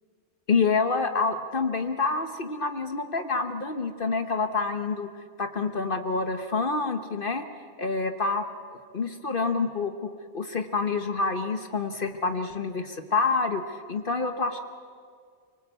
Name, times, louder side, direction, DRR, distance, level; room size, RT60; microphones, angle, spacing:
voice 1, 0.5-5.1 5.4-7.5 7.8-8.4 8.9-14.6, left 4 dB, 50° left, 8 dB, 1.2 m, -27 dB
25.0 x 24.5 x 8.2 m, 2.1 s
omnidirectional pair, 1.2 m